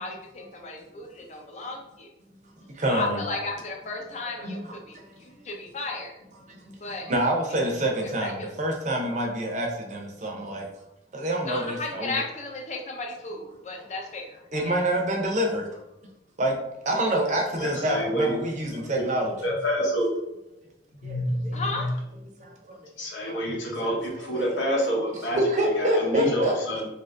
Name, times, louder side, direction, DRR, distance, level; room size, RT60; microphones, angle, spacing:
voice 1, 0.0-2.1 2.9-6.1 6.8-7.1 8.0-8.5 11.5-14.8 17.3-17.4 21.5-21.9, left 3 dB, 35° left, 1 dB, 0.5 m, -34 dB
voice 2, 2.6-3.2 4.4-5.4 6.5-10.7 11.1-12.2 14.5-15.7 16.4-19.3 21.0-21.2 22.4-22.8 23.2-23.4 23.8-23.9 24.3-24.6 25.4-26.5, right 1 dB, 40° right, 1 dB, 0.5 m, -27 dB
voice 3, 17.5-18.4 19.4-20.1 21.0-21.9 23.0-26.9, equal, 85° left, -2 dB, 1.0 m, -28 dB
2.8 x 2.6 x 3.2 m, 0.88 s
head